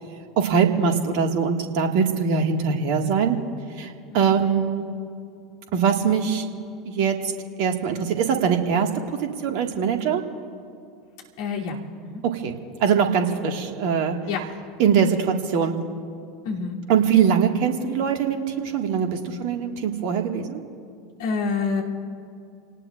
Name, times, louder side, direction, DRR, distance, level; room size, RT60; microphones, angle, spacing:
voice 1, 0.4-3.4 3.8-4.9 5.7-6.5 6.9-7.3 7.6-8.9 9.4-10.2 12.2-12.5 12.8-14.2 14.8-15.7 16.9-20.6, right 7 dB, 55° right, 4 dB, 1.9 m, -22 dB
voice 2, 4.1-4.5 11.4-11.8 12.0-12.2 14.3-14.4 16.4-16.8 21.2-21.8, left 5 dB, 60° left, -3 dB, 3.0 m, -28 dB
29.0 x 18.5 x 2.5 m, 2.4 s
figure-of-eight pair, 80°, 2 cm